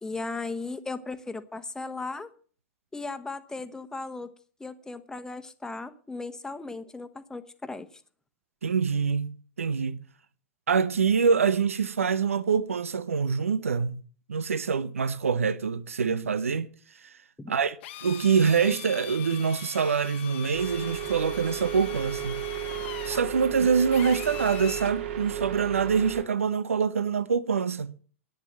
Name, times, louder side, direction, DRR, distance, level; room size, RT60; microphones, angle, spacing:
voice 1, 0.0-2.3 2.9-4.3 4.6-7.9 17.4-17.5, left 3 dB, 10° left, 1.2 m, -36 dB
voice 2, 8.6-10.0 10.7-14.0 14.3-16.7 17.0-17.1 17.5-22.4 23.0-27.9, right 6 dB, 75° right, 0.7 m, -25 dB
Drill, 17.8-25.0, left 13 dB, 55° left, 1.2 m, -42 dB
sound 1, 20.5-26.2, right 10 dB, 55° right, 2.7 m, -34 dB
10.5 x 9.7 x 7.4 m
figure-of-eight pair, 100°, 7 cm